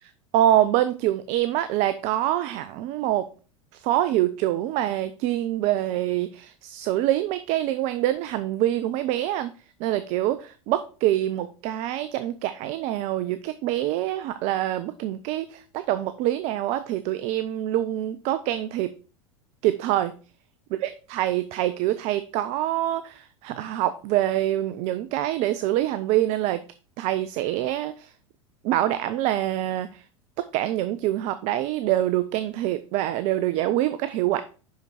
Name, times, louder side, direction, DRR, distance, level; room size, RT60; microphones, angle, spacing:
voice 1, 0.0-3.3 3.7-9.5 9.8-18.9 19.6-20.1 20.7-26.6 27.0-28.1 28.6-30.0 30.4-34.4, right 13 dB, 45° right, 13 dB, 0.5 m, -25 dB
5.8 x 5.6 x 4.2 m, 0.37 s
figure-of-eight pair, 80°, 16 cm